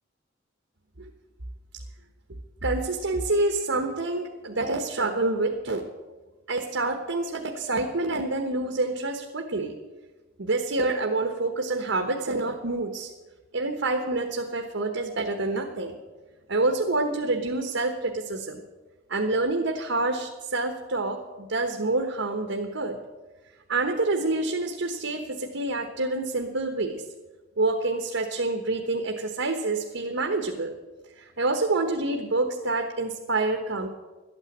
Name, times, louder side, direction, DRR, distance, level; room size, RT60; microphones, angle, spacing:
voice 1, 2.6-5.9 6.5-9.7 10.4-13.1 13.5-16.0 16.5-18.6 19.1-23.0 23.7-27.0 27.6-30.7 31.2-33.9, right 2 dB, 85° right, 4 dB, 1.2 m, -27 dB
12.5 x 9.0 x 8.6 m, 1.2 s
head